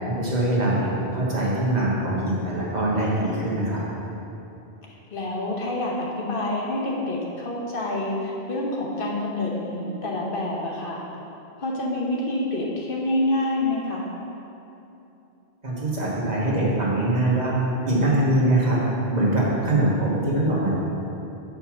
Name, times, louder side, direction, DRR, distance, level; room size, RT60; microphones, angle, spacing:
voice 1, 0.2-3.8 15.6-17.5 17.9-18.8 19.1-20.7, right 1 dB, 40° right, -6 dB, 1.4 m, -23 dB
voice 2, 5.1-11.0 11.6-14.1, left 1 dB, 55° left, -3 dB, 1.1 m, -27 dB
6.7 x 4.6 x 5.9 m, 2.8 s
omnidirectional pair, 1.1 m